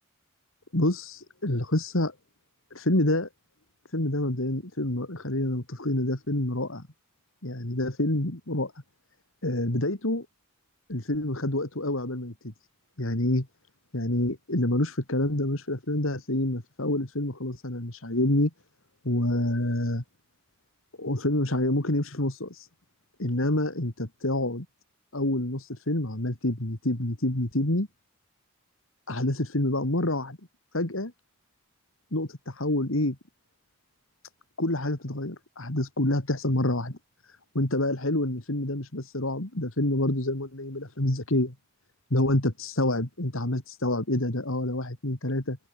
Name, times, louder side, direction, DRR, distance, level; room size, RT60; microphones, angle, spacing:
voice 1, 0.7-2.1 2.7-3.3 3.9-6.9 7.4-8.7 9.4-10.3 10.9-12.5 13.0-13.4 13.9-18.5 19.0-20.0 21.0-22.7 23.2-24.7 25.1-27.9 29.1-30.4 30.7-31.1 32.1-33.2 34.6-37.0 37.5-41.5 42.1-45.6, left 1 dB, 70° left, 2.9 m, -27 dB
head